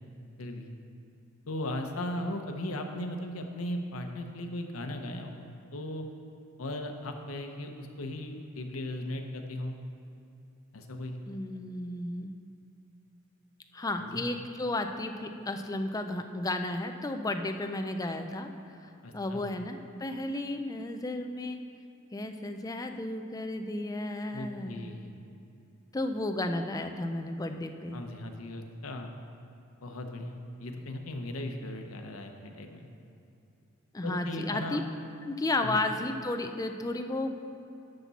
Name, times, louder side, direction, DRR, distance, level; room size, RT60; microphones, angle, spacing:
voice 1, 1.5-5.4 5.7-6.0 6.6-9.8 10.7-11.2 14.0-14.2 19.0-19.5 24.3-25.1 27.9-29.1 29.8-32.9 34.0-34.8 35.6-35.8, left 1 dB, 90° left, 4 dB, 0.8 m, -37 dB
voice 2, 11.3-12.3 13.7-18.5 18.8-21.6 22.1-24.9 25.9-28.0 33.9-34.8 35.3-37.3, left 2 dB, 15° left, 6 dB, 0.4 m, -33 dB
11.5 x 5.9 x 4.1 m, 2.8 s
head